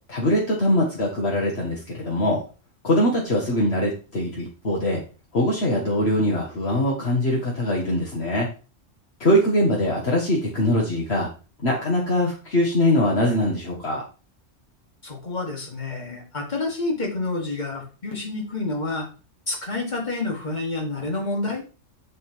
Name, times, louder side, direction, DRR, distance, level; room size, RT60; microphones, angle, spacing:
voice 1, 0.1-2.4 2.8-5.0 5.3-8.5 9.2-11.3 11.6-14.0, left 1 dB, 55° left, -2 dB, 1.8 m, -22 dB
voice 2, 15.0-19.1 19.5-21.6, left 2 dB, 35° left, 0 dB, 2.4 m, -28 dB
10.5 x 3.6 x 4.7 m, 0.35 s
omnidirectional pair, 1.3 m